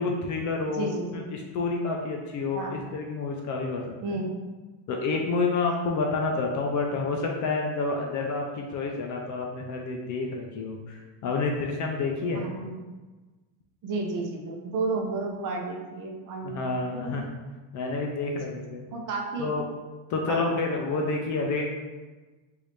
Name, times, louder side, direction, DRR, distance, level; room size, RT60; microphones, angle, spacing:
voice 1, 0.0-4.1 4.9-12.5 16.4-17.3 17.7-18.9 19.4-19.6 20.1-21.6, left 3 dB, 40° left, 1 dB, 0.4 m, -29 dB
voice 2, 0.7-1.3 2.5-2.8 4.0-4.3 6.3-6.4 12.3-12.9 13.8-17.2 18.9-19.5 20.3-20.5, right 3 dB, 40° right, 0 dB, 0.6 m, -32 dB
3.1 x 2.7 x 3.2 m, 1.3 s
cardioid pair, 130°, 48 cm